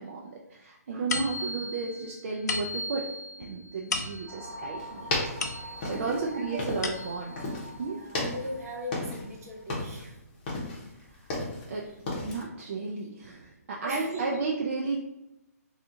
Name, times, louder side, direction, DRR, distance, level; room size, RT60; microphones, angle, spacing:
voice 1, 0.0-3.1 3.4-5.1 5.9-7.4 7.8-8.0 11.1-11.3 11.7-11.9 12.2-15.0, right 4 dB, 45° right, -2 dB, 0.4 m, -33 dB
sound 1, 1.1-6.1 6.5-7.4, left 3 dB, 80° left, 0.5 m, -36 dB
sound 2, 4.3-9.7, right 1 dB, 15° right, 1.1 m, -45 dB
sound 3, 4.8-7.1 7.4-7.7 8.1-9.3 9.6-10.1 10.5-11.7 12.1-12.4, left 2 dB, 30° left, 0.9 m, -33 dB
voice 2, 5.6-6.6 7.8-10.1 13.8-14.4, right 1 dB, 65° right, -2 dB, 1.2 m, -38 dB
2.7 x 2.4 x 3.7 m, 0.93 s
hypercardioid pair, 160°, 9 cm